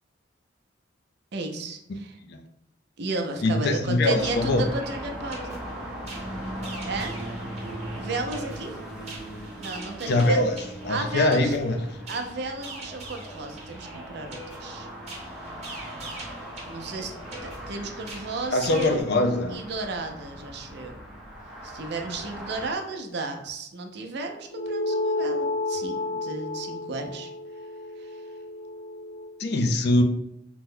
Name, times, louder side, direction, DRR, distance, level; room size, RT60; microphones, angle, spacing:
voice 1, 1.3-2.2 3.0-5.6 6.8-7.2 8.0-8.8 9.6-10.4 10.9-11.5 12.1-14.9 16.7-17.1 17.4-19.0 19.5-21.0 21.6-27.3 28.0-28.2, right 3 dB, 65° right, 4 dB, 0.5 m, -33 dB
voice 2, 3.4-4.7 10.1-10.6 10.8-11.8 18.5-19.6 29.4-30.0, left 2 dB, 60° left, 5 dB, 0.4 m, -22 dB
sound 1, 4.1-22.7, right 1 dB, 5° right, 0.6 m, -39 dB
sound 2, 4.6-19.0, right 2 dB, 35° right, 0.9 m, -43 dB
sound 3, 24.5-29.3, left 2 dB, 80° left, 1.3 m, -31 dB
2.9 x 2.0 x 3.7 m, 0.77 s
head